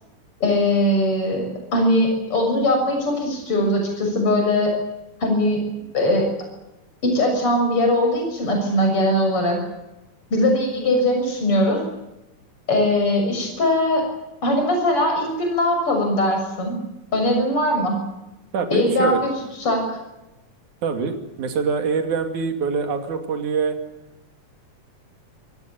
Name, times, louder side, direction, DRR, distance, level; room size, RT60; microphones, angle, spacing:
voice 1, 0.4-4.7 5.2-5.6 5.9-6.3 7.0-9.6 10.3-11.8 12.7-14.1 14.4-16.8 17.1-18.0 18.7-19.3 19.6-20.0, left 1 dB, 45° left, 3 dB, 7.5 m, -20 dB
voice 2, 18.5-19.2 20.8-23.8, right 5 dB, 70° right, 6 dB, 4.0 m, -24 dB
28.0 x 17.5 x 9.1 m, 0.96 s
omnidirectional pair, 3.5 m